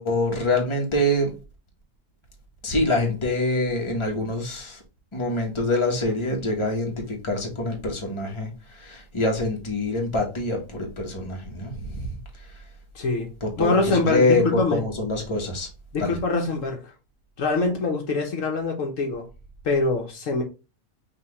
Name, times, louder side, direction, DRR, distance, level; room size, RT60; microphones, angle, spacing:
voice 1, 0.0-1.3 2.6-4.8 5.1-8.5 8.8-12.1 13.4-15.7 16.0-16.2, left 1 dB, 20° left, 1.2 m, -25 dB
voice 2, 12.9-13.3 13.6-14.8 15.9-16.9 17.4-19.2 19.6-20.4, left 3 dB, 70° left, 1.3 m, -24 dB
5.8 x 2.9 x 3.1 m
omnidirectional pair, 1.5 m